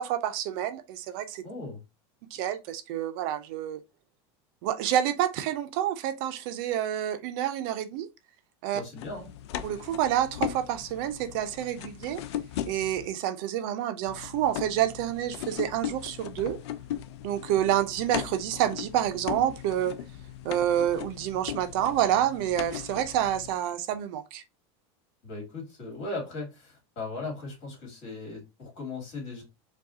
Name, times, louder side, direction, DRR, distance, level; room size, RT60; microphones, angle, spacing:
voice 1, 0.0-1.4 2.3-3.8 4.6-8.1 8.6-8.8 9.6-12.2 12.7-16.6 17.2-19.9 20.4-24.4, right 11 dB, 55° right, 0.5 m, -28 dB
voice 2, 1.4-1.8 8.7-9.3 25.2-29.4, left 3 dB, 50° left, 2.1 m, -38 dB
sound 1, 9.0-13.1 14.0-23.5, left 11 dB, 85° left, 0.4 m, -38 dB
4.7 x 2.3 x 2.7 m
supercardioid pair, 155°, 14 cm